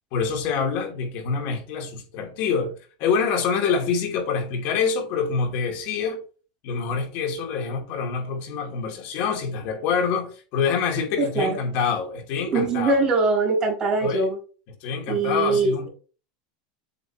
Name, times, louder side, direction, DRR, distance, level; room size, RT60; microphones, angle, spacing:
voice 1, 0.1-6.2 6.6-13.0 14.0-14.3 14.8-15.9, left 5 dB, 50° left, 3.0 m, -26 dB
voice 2, 11.2-11.6 12.5-14.4 15.1-15.9, right 3 dB, 15° right, 4.8 m, -22 dB
8.4 x 7.2 x 3.1 m
supercardioid pair, 160°, 4 cm